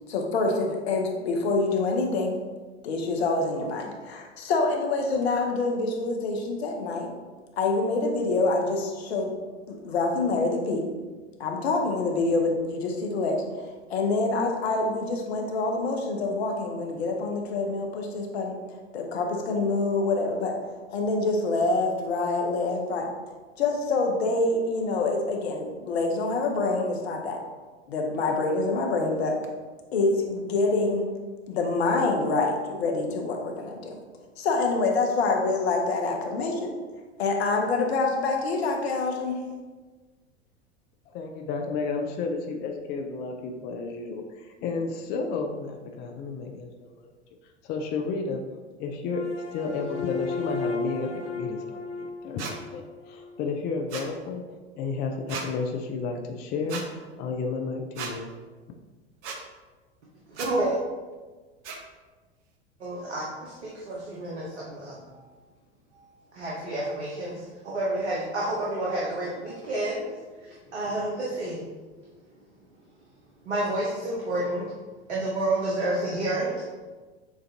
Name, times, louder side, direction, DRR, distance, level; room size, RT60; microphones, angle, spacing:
voice 1, 0.1-2.4 2.8-7.1 7.6-9.3 9.7-10.8 11.4-18.6 18.9-20.5 20.9-23.1 23.6-27.4 27.9-29.3 29.9-31.1 31.5-34.0 34.4-36.7 37.2-39.4, left 3 dB, 65° left, 1 dB, 0.9 m, -26 dB
voice 2, 41.1-47.1 47.6-48.5 48.8-54.4 54.8-58.3, left 4 dB, 30° left, 3 dB, 0.4 m, -32 dB
sound 1, 49.1-53.4, left 4 dB, 90° left, 0.6 m, -34 dB
sound 2, 52.4-52.5 53.9-54.1 55.3-55.5 56.7-56.8 58.0-58.1 59.2-59.4 60.3-60.5 61.6-61.8, right 5 dB, 45° right, 0.7 m, -35 dB
voice 3, 60.3-60.8 62.8-65.0 66.3-70.1 70.4-71.6 73.4-74.7 75.1-76.5, right 1 dB, 75° right, -5 dB, 1.0 m, -29 dB
7.1 x 2.5 x 2.8 m, 1.3 s
figure-of-eight pair, 85°, 34 cm